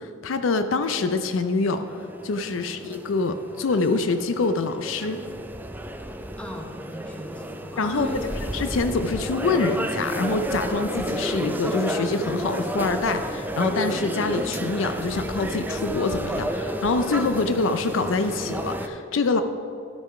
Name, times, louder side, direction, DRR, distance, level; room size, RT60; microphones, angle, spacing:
voice 1, 0.0-1.8 2.2-5.2 7.8-19.4, left 3 dB, 70° left, 9 dB, 0.5 m, -25 dB
sound 1, 0.9-18.9, equal, 10° right, 0.4 m, -31 dB
voice 2, 6.4-8.3, equal, 5° left, 1 dB, 0.9 m, -37 dB
11.0 x 6.2 x 4.7 m, 2.4 s
head